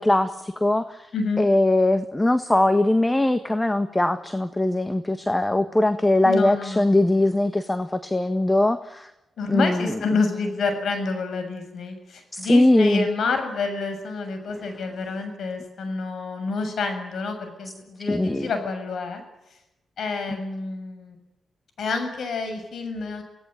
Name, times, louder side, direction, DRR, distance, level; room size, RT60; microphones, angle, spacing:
voice 1, 0.0-1.1 1.4-9.1 9.5-9.9 12.3-13.1 18.1-18.5 20.3-20.4, left 1 dB, 15° left, 10 dB, 1.5 m, -21 dB
voice 2, 1.1-1.5 6.2-6.8 9.4-19.2 20.0-21.2 21.8-23.2, left 3 dB, 70° left, 7 dB, 7.2 m, -28 dB
28.0 x 18.0 x 9.1 m, 0.92 s
cardioid pair, 95°, 0 cm